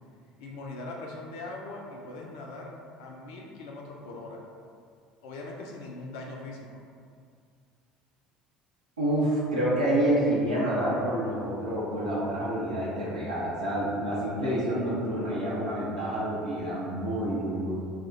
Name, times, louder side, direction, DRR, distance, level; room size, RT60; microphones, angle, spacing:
voice 1, 0.4-2.7 3.0-4.4 5.2-6.8, left 2 dB, 65° left, -1 dB, 0.3 m, -41 dB
voice 2, 9.0-17.8, right 1 dB, 80° right, -8 dB, 0.5 m, -28 dB
2.3 x 2.1 x 3.8 m, 2.2 s
figure-of-eight pair, 60°, 4 cm